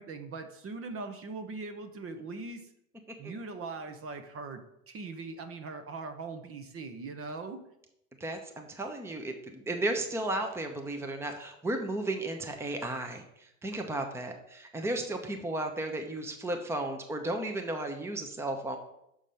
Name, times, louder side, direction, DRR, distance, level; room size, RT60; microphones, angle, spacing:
voice 1, 0.0-2.7 3.2-7.6, right 3 dB, 35° right, 8 dB, 1.0 m, -41 dB
voice 2, 8.2-18.8, right 1 dB, 5° right, 5 dB, 0.9 m, -34 dB
6.4 x 5.1 x 5.6 m, 0.79 s
supercardioid pair, 105°, 41 cm